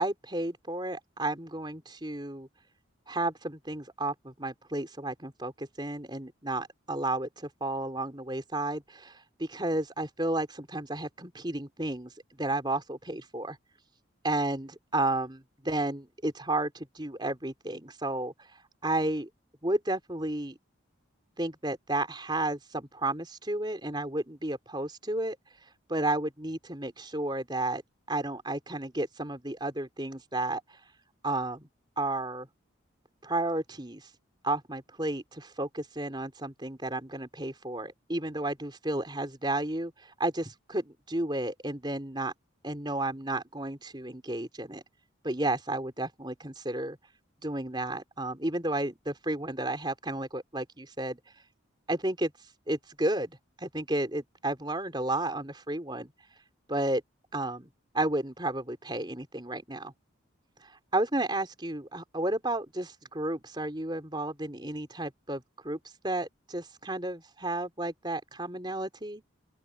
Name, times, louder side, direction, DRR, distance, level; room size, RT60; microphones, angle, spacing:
voice 1, 0.0-2.5 3.1-12.1 12.4-13.6 14.2-18.3 18.8-19.3 19.6-20.6 21.4-25.4 25.9-27.8 28.1-30.6 31.2-31.7 32.0-32.5 33.2-34.1 34.4-42.3 42.6-44.8 45.2-47.0 47.4-51.2 51.9-52.3 52.7-56.1 56.7-57.0 57.3-57.7 57.9-59.9 60.9-65.8 66.0-69.2, right 2 dB, 20° right, 4.2 m, -32 dB
open air
head